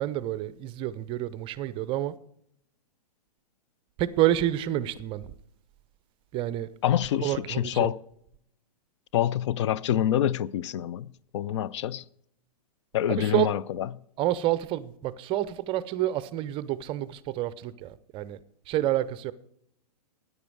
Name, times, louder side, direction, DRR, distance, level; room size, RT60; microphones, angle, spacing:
voice 1, 0.0-2.1 4.0-5.2 6.3-6.7 7.2-7.9 13.1-13.5 14.2-18.4 18.7-19.3, right 13 dB, 25° right, 0.5 m, -28 dB
voice 2, 6.8-8.0 9.1-12.0 12.9-13.9, left 11 dB, 45° left, 0.4 m, -26 dB
13.5 x 9.7 x 4.8 m
figure-of-eight pair, 115°, 21 cm